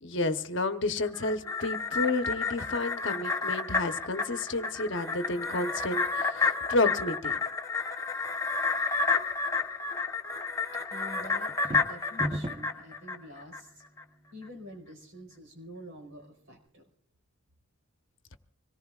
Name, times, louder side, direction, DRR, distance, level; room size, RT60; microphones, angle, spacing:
voice 1, 0.0-7.4 9.1-9.2, left 2 dB, 60° left, 8 dB, 1.0 m, -31 dB
sound 1, 1.0-13.6 14.0-14.1, left 4 dB, 15° left, 0.8 m, -31 dB
voice 2, 10.9-13.8 14.3-16.8, equal, 75° right, 0 dB, 4.5 m, -47 dB
sound 2, 11.5-12.8, equal, 25° right, 1.0 m, -34 dB
26.0 x 19.0 x 2.4 m, 0.64 s
head